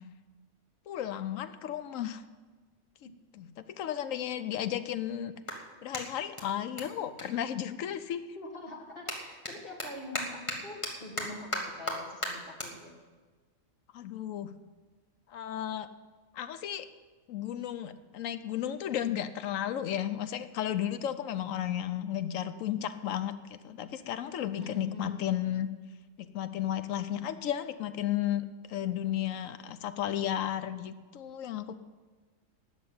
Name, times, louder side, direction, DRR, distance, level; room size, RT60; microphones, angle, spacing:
voice 1, 0.9-2.2 3.0-3.1 3.3-3.5 3.8-5.3 5.8-8.2 13.9-14.5 15.3-15.9 16.3-16.9 17.3-25.7 26.2-31.8, left 11 dB, 75° left, 12 dB, 1.0 m, -33 dB
Clapping, 4.1-8.2 8.5-15.1, equal, 25° left, 1.7 m, -40 dB
voice 2, 8.4-13.0 24.5-25.3, left 2 dB, 45° left, 1 dB, 1.9 m, -45 dB
12.5 x 6.8 x 9.4 m, 1.4 s
omnidirectional pair, 1.4 m